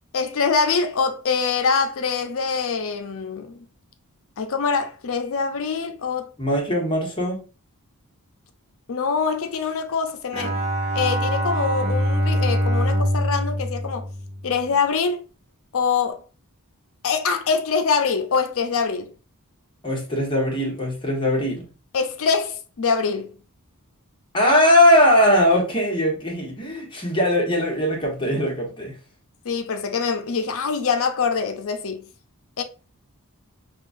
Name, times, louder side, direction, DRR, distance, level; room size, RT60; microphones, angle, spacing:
voice 1, 0.1-3.6 4.4-6.3 8.9-10.5 10.9-14.0 14.4-15.2 15.7-16.2 17.0-19.1 21.9-23.4 29.4-32.1 32.6-32.7, left 5 dB, 65° left, 0.6 m, -24 dB
voice 2, 6.4-7.4 19.8-21.6 24.3-28.9, left 1 dB, 20° left, 1.3 m, -20 dB
Bowed string instrument, 10.3-14.8, equal, 30° right, 1.0 m, -24 dB
5.7 x 2.4 x 2.6 m
head